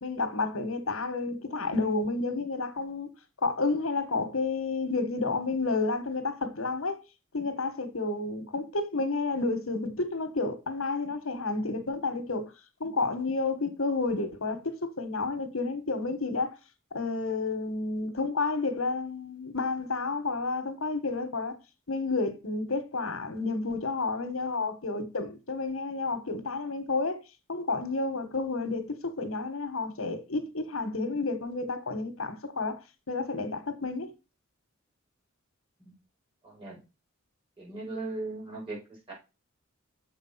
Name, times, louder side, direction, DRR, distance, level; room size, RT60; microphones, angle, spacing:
voice 1, 0.0-3.1 3.4-7.0 7.3-12.4 12.8-16.5 16.9-21.6 21.9-27.2 27.5-32.8 33.1-34.1, left 3 dB, 75° left, 1.4 m, -30 dB
voice 2, 36.4-36.8 37.6-39.1, right 2 dB, 25° right, 5.4 m, -38 dB
7.1 x 5.3 x 5.7 m
head